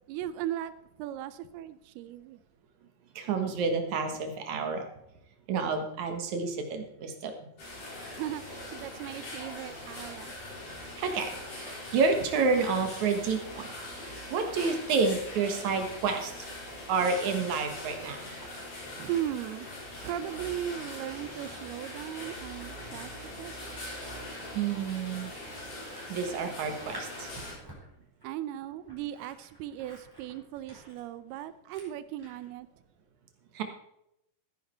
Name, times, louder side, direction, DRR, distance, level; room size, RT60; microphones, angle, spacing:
voice 1, 0.0-2.4 8.1-10.3 19.0-19.7 20.0-24.0 28.2-32.7, right 11 dB, 80° right, 14 dB, 2.5 m, -37 dB
voice 2, 3.2-4.9 5.5-7.3 11.0-16.5 16.9-18.3 24.5-25.3 26.1-27.3 33.5-33.6, right 4 dB, 60° right, 6 dB, 2.3 m, -29 dB
sound 1, 7.6-27.5, left 1 dB, 50° left, 6.0 m, -42 dB
Scissors, 17.8-18.5 18.8-32.5, equal, 5° right, 4.2 m, -53 dB
14.5 x 10.0 x 4.3 m, 0.81 s
omnidirectional pair, 4.6 m